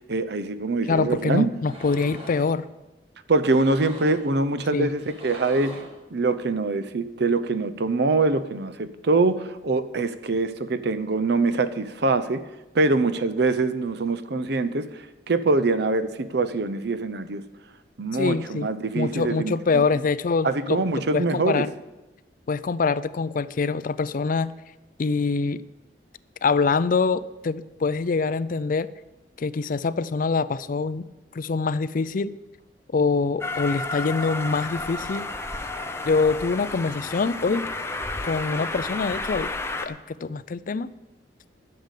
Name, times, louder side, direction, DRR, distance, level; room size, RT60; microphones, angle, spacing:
voice 1, 0.1-1.6 3.3-5.9 6.1-12.4 12.7-14.9 15.3-17.4 18.0-19.8 20.4-21.7, right 3 dB, 65° right, 0.7 m, -24 dB
voice 2, 0.9-2.6 4.7-4.9 18.1-20.8 21.1-21.7 22.5-24.5 25.0-25.6 26.4-28.9 29.4-31.0 31.3-32.3 32.9-35.2 36.1-37.7 38.2-39.5 39.8-40.9, left 4 dB, 50° left, 0.4 m, -24 dB
sound 1, 1.6-2.5 3.4-4.3 4.9-6.0, equal, 35° right, 4.6 m, -42 dB
Train, 33.4-39.9, left 2 dB, 15° left, 0.8 m, -32 dB
12.0 x 6.9 x 8.3 m
head